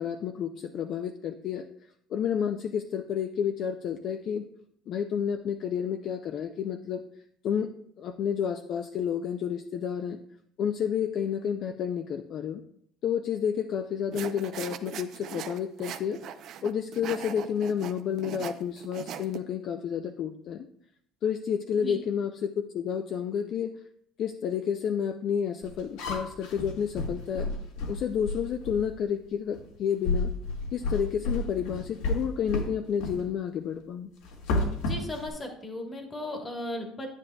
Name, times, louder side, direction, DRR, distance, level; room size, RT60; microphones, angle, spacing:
voice 1, 0.0-1.6 2.1-4.4 4.9-7.0 7.4-7.7 8.0-10.2 10.6-12.6 13.0-16.2 16.6-20.7 21.2-23.7 24.2-27.5 27.9-30.3 30.7-34.1, left 8 dB, 40° left, 7 dB, 0.4 m, -30 dB
sound 1, 14.1-19.4, right 9 dB, 45° right, 0.5 m, -39 dB
sound 2, 25.6-28.9 29.5-29.7 30.0-32.7 33.0-33.2 34.2-35.3, left 2 dB, 85° left, 1.9 m, -31 dB
voice 2, 34.8-37.1, left 1 dB, 15° left, 3 dB, 1.2 m, -36 dB
9.9 x 9.8 x 2.3 m, 0.69 s
cardioid pair, 170°, 0 cm